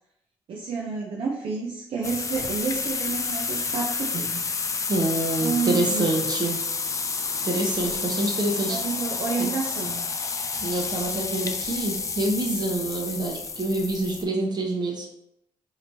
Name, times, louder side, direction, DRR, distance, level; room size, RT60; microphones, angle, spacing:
voice 1, 0.5-4.4 5.4-6.2 8.7-10.1, right 5 dB, 65° right, -1 dB, 0.6 m, -30 dB
sound 1, 2.0-14.2, left 4 dB, 30° left, 0.4 m, -30 dB
voice 2, 4.9-6.6 7.4-8.8 9.4-9.5 10.6-15.1, right 2 dB, 45° right, 0 dB, 1.0 m, -26 dB
4.2 x 3.0 x 2.8 m, 0.79 s
cardioid pair, 75°, 10 cm